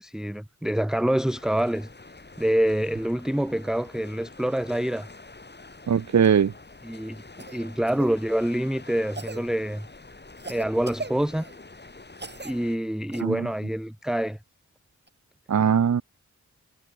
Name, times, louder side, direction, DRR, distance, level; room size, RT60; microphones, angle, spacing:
voice 1, 0.0-1.9 2.4-5.1 6.8-7.2 7.5-9.9 10.5-11.5 12.4-14.4, right 1 dB, ahead, 0.8 m, -26 dB
sound 1, 1.3-12.8, left 3 dB, 35° left, 7.2 m, -47 dB
voice 2, 5.9-6.5 13.2-13.4 15.5-16.0, right 7 dB, 65° right, 1.1 m, -20 dB
Cough, 6.2-6.4 7.4-8.1 9.1-9.5 10.4-11.6 12.2-12.5 13.1-13.2 15.1-15.2, right 3 dB, 35° right, 7.1 m, -39 dB
wide cardioid pair, 75°, 30 cm